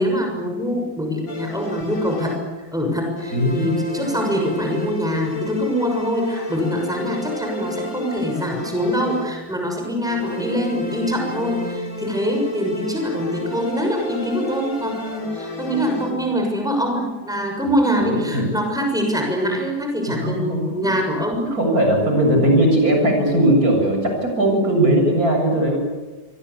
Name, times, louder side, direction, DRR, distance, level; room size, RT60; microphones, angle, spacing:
voice 1, 0.0-2.4 2.7-21.5, equal, ahead, 2 dB, 6.4 m, -24 dB
sound 1, 1.3-2.8 3.2-9.6 10.0-16.5, left 2 dB, 55° left, 3.8 m, -31 dB
voice 2, 3.3-3.8 18.0-18.4 20.2-20.6 21.5-25.8, right 1 dB, 55° right, 2 dB, 7.8 m, -18 dB
27.5 x 24.0 x 8.5 m, 1.2 s
omnidirectional pair, 1.8 m